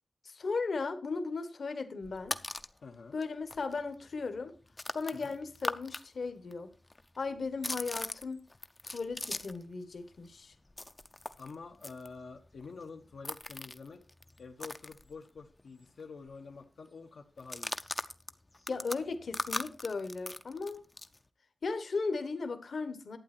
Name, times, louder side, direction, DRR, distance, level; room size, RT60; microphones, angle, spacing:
voice 1, 0.2-2.4 3.1-4.5 4.9-6.7 7.2-8.4 8.9-10.5 18.7-20.8 21.6-23.2, left 4 dB, 55° left, 9 dB, 1.2 m, -36 dB
sound 1, 2.0-2.8 3.2-3.3 3.5-6.0 6.3-9.7 10.0-15.6 15.9-16.0 16.3-16.6 17.4-21.2, left 2 dB, 20° left, 0.5 m, -40 dB
voice 2, 2.8-3.2 5.1-5.3 11.4-14.0 14.4-17.7, left 4 dB, 80° left, 2 dB, 1.1 m, -47 dB
11.5 x 8.8 x 4.3 m, 0.35 s
wide cardioid pair, 155°, 0 cm